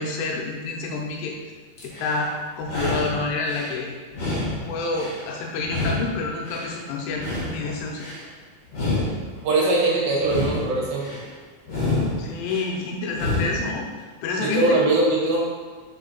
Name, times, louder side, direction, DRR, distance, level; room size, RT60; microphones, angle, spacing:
voice 1, 0.0-1.4 1.8-3.9 4.4-8.1 12.2-13.9 14.2-14.8, left 3 dB, 90° left, 0 dB, 3.2 m, -28 dB
sound 1, 1.8-2.2 2.6-3.7 4.1-5.2 5.6-6.7 7.1-8.2 8.7-9.8 10.2-11.2 11.6-12.7 13.1-13.7, left 2 dB, 65° left, 1.5 m, -28 dB
voice 2, 9.4-11.2 14.4-15.4, right 2 dB, 70° right, -4 dB, 3.0 m, -21 dB
6.9 x 3.8 x 4.0 m, 1.5 s
omnidirectional pair, 5.6 m